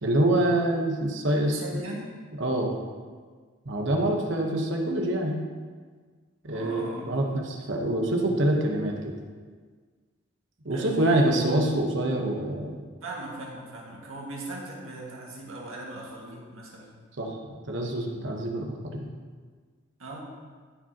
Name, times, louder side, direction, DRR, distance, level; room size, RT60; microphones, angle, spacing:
voice 1, 0.0-1.8 2.4-2.8 3.6-5.4 6.4-9.1 10.6-12.8 17.2-17.4 17.7-19.1, right 1 dB, 60° right, 1 dB, 1.1 m, -26 dB
voice 2, 1.3-2.1 6.5-7.3 10.7-11.5 13.0-17.0 20.0-20.2, right 2 dB, 85° right, -3 dB, 1.9 m, -39 dB
13.5 x 5.1 x 2.9 m, 1.6 s
head